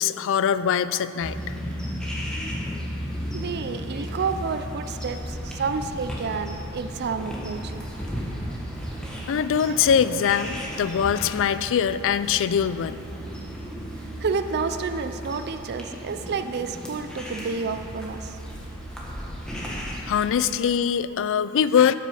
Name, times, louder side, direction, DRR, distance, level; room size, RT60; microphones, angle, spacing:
voice 1, 0.0-1.4 9.3-13.0 20.1-21.9, left 8 dB, 60° left, 14 dB, 0.3 m, -22 dB
sound 1, 1.2-20.3, equal, 5° left, 1.4 m, -34 dB
voice 2, 3.3-7.8 14.2-18.3, right 5 dB, 50° right, 10 dB, 0.4 m, -30 dB
12.0 x 6.1 x 5.5 m, 2.8 s
head